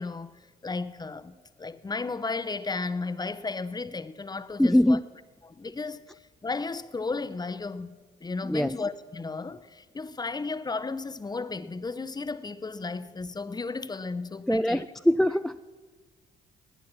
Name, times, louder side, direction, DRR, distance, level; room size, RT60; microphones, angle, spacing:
voice 1, 0.0-5.0 5.4-6.0 6.4-14.8, left 3 dB, 20° left, 0.8 m, -34 dB
voice 2, 4.6-5.0 8.4-8.7 14.5-15.6, left 1 dB, ahead, 0.3 m, -22 dB
19.0 x 9.2 x 5.9 m
hypercardioid pair, 50°, 20 cm